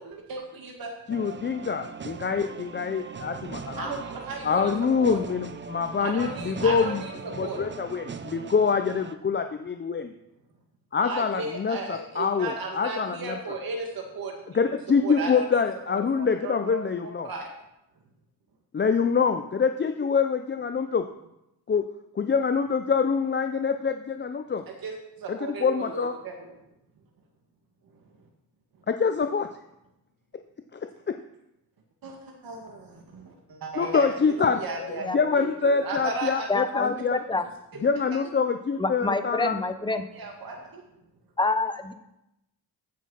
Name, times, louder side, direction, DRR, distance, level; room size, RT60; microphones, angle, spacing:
voice 1, 0.0-0.9 3.7-4.7 5.0-5.3 6.0-7.1 7.4-7.6 11.0-14.3 15.0-15.4 15.9-16.8 17.2-17.5 24.8-26.6 32.0-36.5 40.1-40.8, right 3 dB, 65° right, 1 dB, 2.1 m, -35 dB
voice 2, 1.1-4.0 4.4-7.0 7.3-10.1 10.9-13.4 14.5-17.3 18.7-21.1 21.7-21.8 22.2-24.6 25.3-26.1 28.9-29.5 30.7-31.2 33.8-37.2 37.8-39.6, left 5 dB, 30° left, 8 dB, 0.6 m, -25 dB
sound 1, 1.1-9.2, right 5 dB, 30° right, 0.8 m, -40 dB
voice 3, 36.5-37.4 38.8-40.1 41.4-41.9, left 3 dB, 10° left, 9 dB, 1.0 m, -27 dB
15.0 x 6.4 x 5.6 m, 0.88 s
cardioid pair, 100°, 38 cm